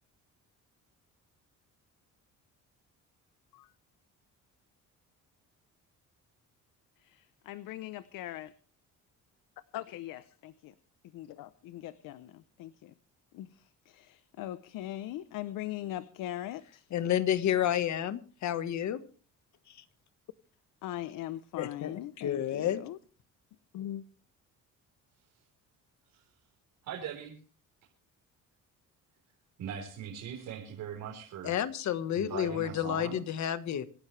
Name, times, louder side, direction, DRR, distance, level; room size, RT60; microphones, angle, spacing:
voice 1, 7.0-8.5 9.7-10.7 11.1-12.9 13.3-16.9 20.8-23.0 23.7-24.0, left 13 dB, 85° left, 15 dB, 0.8 m, -41 dB
voice 2, 16.9-19.0 19.7-19.8 21.6-22.8 31.4-33.9, left 10 dB, 60° left, 12 dB, 1.5 m, -30 dB
voice 3, 26.8-27.4 29.6-31.6 32.2-33.2, right 8 dB, 80° right, -1 dB, 4.3 m, -40 dB
26.0 x 12.5 x 3.3 m, 0.39 s
cardioid pair, 115°, 32 cm